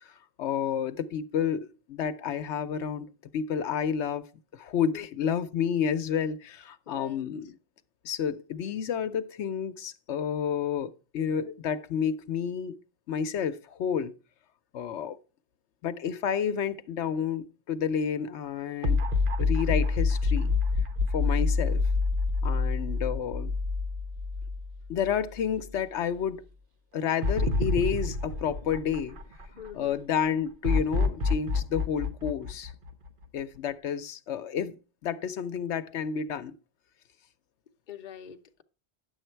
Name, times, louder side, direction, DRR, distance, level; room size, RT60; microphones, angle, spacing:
voice 1, 0.0-3.1 3.3-4.2 4.5-7.5 8.0-12.7 13.1-14.1 14.7-15.2 15.8-19.0 19.4-20.5 21.1-21.8 22.4-23.5 24.9-26.4 26.9-29.2 29.7-32.7 33.3-36.5, left 8 dB, 80° left, 1.0 m, -30 dB
voice 2, 6.9-7.3 29.6-30.0 37.9-38.6, left 9 dB, 50° left, 0.8 m, -43 dB
sound 1, 18.8-25.2 25.5-25.6 27.2-29.7 30.6-33.4, left 3 dB, 50° right, 1.1 m, -27 dB
10.0 x 7.3 x 4.4 m
omnidirectional pair, 1.1 m